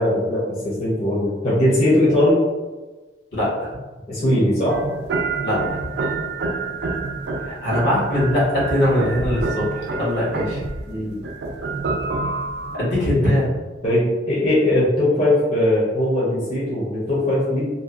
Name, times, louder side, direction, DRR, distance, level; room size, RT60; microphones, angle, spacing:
voice 1, 0.0-2.4 4.1-4.9 10.9-11.2 13.8-17.7, left 1 dB, 35° left, -9 dB, 0.6 m, -20 dB
voice 2, 3.3-3.7 5.4-5.8 7.5-10.6 12.7-13.5, left 1 dB, 75° left, -7 dB, 1.3 m, -21 dB
sound 1, 4.7-12.8, right 3 dB, 65° right, 0.3 m, -27 dB
2.6 x 2.2 x 2.3 m, 1.2 s
head